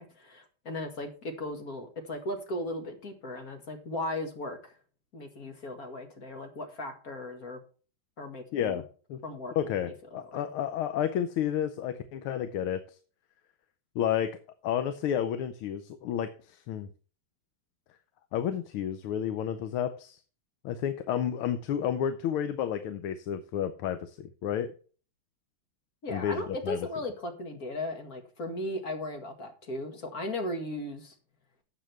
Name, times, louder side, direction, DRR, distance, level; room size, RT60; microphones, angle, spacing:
voice 1, 0.0-4.7 5.1-7.6 8.2-8.8 9.2-10.5 26.0-31.2, left 1 dB, 45° left, 5 dB, 2.1 m, -37 dB
voice 2, 8.5-8.8 9.1-9.2 9.6-12.8 13.9-14.3 14.6-16.9 18.3-20.2 20.6-24.7 26.1-26.8, left 9 dB, 90° left, 10 dB, 1.7 m, -31 dB
13.0 x 7.6 x 3.4 m, 0.39 s
omnidirectional pair, 2.3 m